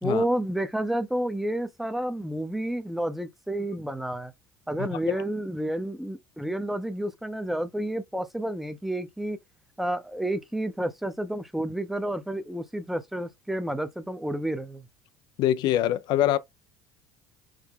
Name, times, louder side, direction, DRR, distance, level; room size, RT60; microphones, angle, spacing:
voice 1, 0.0-4.3 4.7-9.4 9.8-14.9, right 1 dB, 5° right, 0.6 m, -30 dB
voice 2, 4.8-5.2 15.4-16.4, left 12 dB, 65° left, 0.4 m, -25 dB
4.9 x 2.1 x 3.6 m
supercardioid pair, 85°, 8 cm